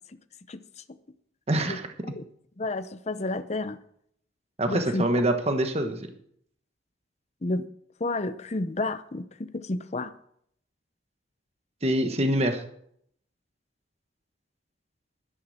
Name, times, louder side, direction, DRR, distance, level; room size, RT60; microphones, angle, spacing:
voice 1, 1.5-1.9 4.6-6.1 11.8-12.6, right 1 dB, 35° right, 6 dB, 1.2 m, -25 dB
voice 2, 2.6-3.8 4.7-5.0 7.4-7.7 8.0-10.1, left 2 dB, 35° left, 12 dB, 0.7 m, -30 dB
11.5 x 10.5 x 6.3 m, 0.69 s
head